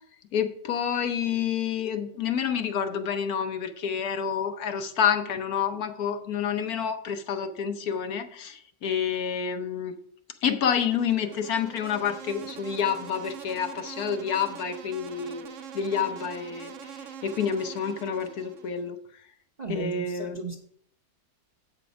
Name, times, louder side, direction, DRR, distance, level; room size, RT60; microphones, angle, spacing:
voice 1, 0.3-9.9 10.4-15.5 15.7-19.0 19.7-20.4, left 7 dB, 70° left, 1.3 m, -28 dB
Insect, 10.7-18.9, right 7 dB, 60° right, 0.9 m, -44 dB
voice 2, 19.6-20.6, right 4 dB, 35° right, 0.7 m, -35 dB
8.0 x 5.9 x 5.2 m
omnidirectional pair, 1.7 m